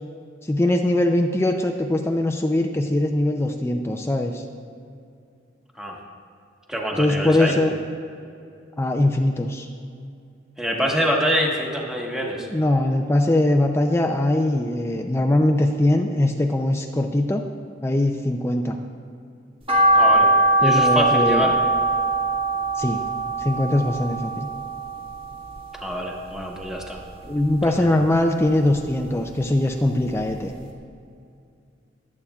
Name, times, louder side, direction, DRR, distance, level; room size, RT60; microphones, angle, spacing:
voice 1, 0.4-4.4 6.9-7.7 8.8-9.7 12.5-17.4 17.8-18.8 20.6-21.5 22.7-23.0 23.4-24.5 27.2-30.5, left 1 dB, 15° left, 3 dB, 0.4 m, -21 dB
voice 2, 6.7-7.6 10.6-12.5 19.9-20.3 20.6-21.5 25.8-27.0, equal, 5° right, -1 dB, 1.3 m, -25 dB
sound 1, 19.7-26.0 26.4-27.5 27.9-29.3 29.6-29.7 30.2-30.3 30.6-30.7, right 2 dB, 30° right, 1.8 m, -21 dB
23.0 x 8.5 x 2.4 m, 2.5 s
head